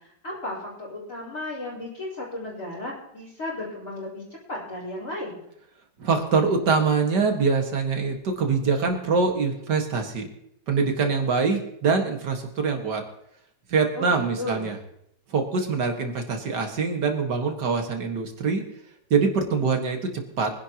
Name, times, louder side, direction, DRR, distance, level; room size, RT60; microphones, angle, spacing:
voice 1, 0.0-4.2 4.5-5.4 13.9-14.7, left 2 dB, 50° left, -8 dB, 4.7 m, -34 dB
voice 2, 6.0-10.3 10.7-13.0 13.7-14.8 15.3-18.6 19.1-20.5, right 4 dB, 90° right, 4 dB, 2.4 m, -24 dB
24.0 x 11.0 x 3.0 m, 0.76 s
omnidirectional pair, 1.8 m